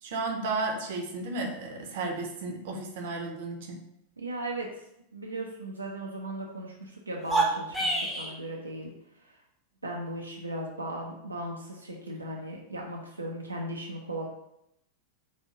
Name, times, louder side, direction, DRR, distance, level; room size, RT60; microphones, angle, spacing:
voice 1, 0.0-3.8, right 3 dB, 55° right, 1 dB, 0.8 m, -33 dB
voice 2, 4.2-4.7 5.1-9.4 9.8-14.3, right 1 dB, 80° right, -2 dB, 0.7 m, -37 dB
sound 1, 7.2-8.3, right 2 dB, 5° left, 0.9 m, -27 dB
4.2 x 2.6 x 4.9 m, 0.79 s
figure-of-eight pair, 90°, 0 cm